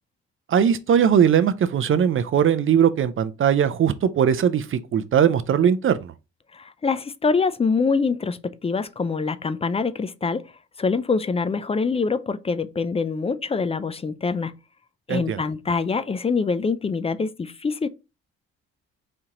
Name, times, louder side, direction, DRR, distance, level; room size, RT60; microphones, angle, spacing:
voice 1, 0.5-6.1 15.1-15.4, right 8 dB, 45° right, 0.5 m, -20 dB
voice 2, 6.5-10.5 10.8-14.6 15.1-17.9, left 4 dB, 20° left, 0.4 m, -25 dB
4.3 x 2.9 x 3.7 m
cardioid pair, 90°, 30 cm